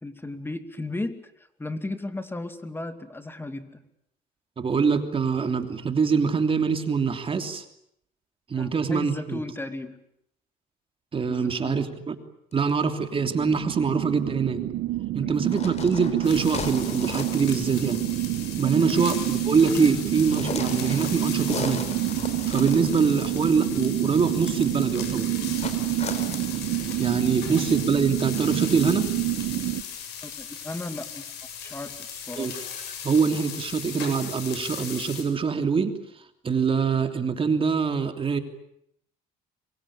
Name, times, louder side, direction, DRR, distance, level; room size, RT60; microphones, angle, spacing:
voice 1, 0.0-3.7 8.6-10.0 11.3-11.8 15.2-15.5 18.6-19.0 30.2-31.2 31.6-32.5, left 2 dB, 15° left, 9 dB, 2.5 m, -35 dB
voice 2, 4.6-7.6 8.5-9.4 11.1-12.1 12.5-14.6 15.1-18.0 18.5-21.8 22.4-25.3 27.0-29.2 32.4-32.6 33.0-36.0 36.4-38.4, right 5 dB, 30° right, 7 dB, 3.1 m, -24 dB
sound 1, 12.5-12.8 15.4-17.5 17.8-18.1 20.3-23.3 25.6-27.0, left 5 dB, 40° left, 4.2 m, -37 dB
sound 2, 13.1-29.8, right 15 dB, 75° right, 1.5 m, -28 dB
sound 3, 16.2-35.2, left 8 dB, 90° left, 7.3 m, -38 dB
26.0 x 23.5 x 8.9 m, 0.73 s
cardioid pair, 110°, 17 cm